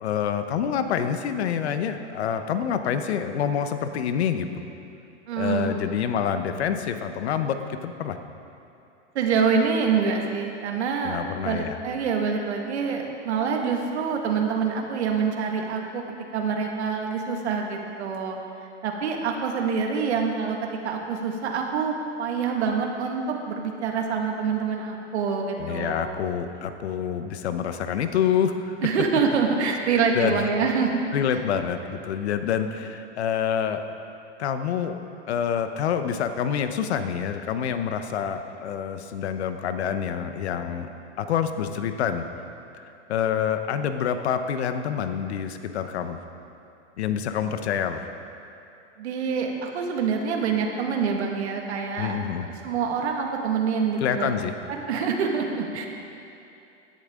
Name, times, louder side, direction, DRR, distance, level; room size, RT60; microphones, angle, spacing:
voice 1, 0.0-4.5 5.4-8.2 11.0-11.8 25.6-28.8 30.1-30.5 31.1-33.8 34.4-35.0 35.3-40.9 41.2-42.2 42.7-42.8 43.1-46.2 47.0-48.1 52.0-52.5 54.0-54.5, left 8 dB, 65° left, 8 dB, 0.9 m, -27 dB
voice 2, 5.3-5.8 9.2-16.0 16.3-18.4 18.8-26.1 28.8-31.1 49.0-52.2 52.4-54.3 54.7-55.9, right 5 dB, 65° right, 2 dB, 1.8 m, -26 dB
16.0 x 10.5 x 3.7 m, 2.7 s
supercardioid pair, 170°, 35 cm